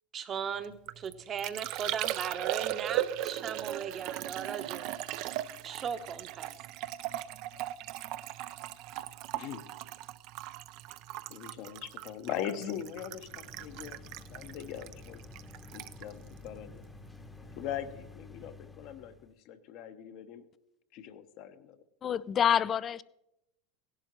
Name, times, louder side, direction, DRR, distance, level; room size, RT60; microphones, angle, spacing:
voice 1, 0.1-5.0 5.6-6.5, right 7 dB, 35° right, 0.9 m, -38 dB
Liquid, 0.6-17.3 17.5-18.1, right 14 dB, 60° right, 0.5 m, -38 dB
voice 2, 11.3-14.0 14.3-15.2 15.7-16.8 17.6-20.4 20.9-21.8, left 10 dB, 60° left, 1.0 m, -41 dB
sound 1, 12.7-19.3, left 4 dB, 10° left, 0.9 m, -51 dB
voice 3, 22.0-23.0, left 9 dB, 35° left, 0.4 m, -27 dB
16.5 x 11.5 x 3.1 m
hypercardioid pair, 105°, 0 cm